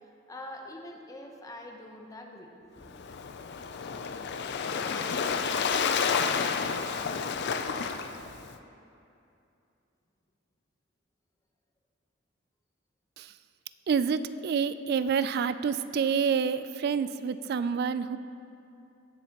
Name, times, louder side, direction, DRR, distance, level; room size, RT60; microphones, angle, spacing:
voice 1, 0.3-2.9, left 1 dB, 15° left, 2 dB, 0.8 m, -44 dB
Waves surf, 2.8-8.5, left 6 dB, 55° left, 0.4 m, -30 dB
voice 2, 13.9-18.2, right 6 dB, 50° right, 13 dB, 0.3 m, -28 dB
18.5 x 6.9 x 3.0 m, 2.7 s
head